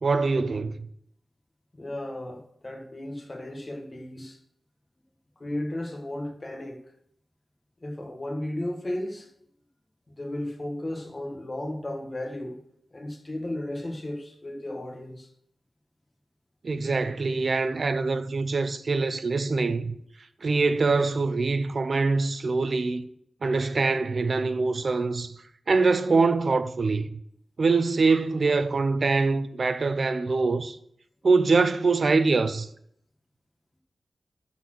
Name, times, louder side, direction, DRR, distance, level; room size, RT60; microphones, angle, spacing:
voice 1, 0.0-0.8 16.6-19.9 20.4-23.0 23.4-25.4 25.7-27.0 27.6-30.8 31.2-32.7, right 4 dB, 55° right, 0.6 m, -24 dB
voice 2, 1.7-4.4 5.4-6.8 7.8-9.3 10.1-12.6 12.9-15.3, left 1 dB, 30° left, 1.5 m, -34 dB
12.5 x 4.4 x 6.1 m
wide cardioid pair, 130°, 0 cm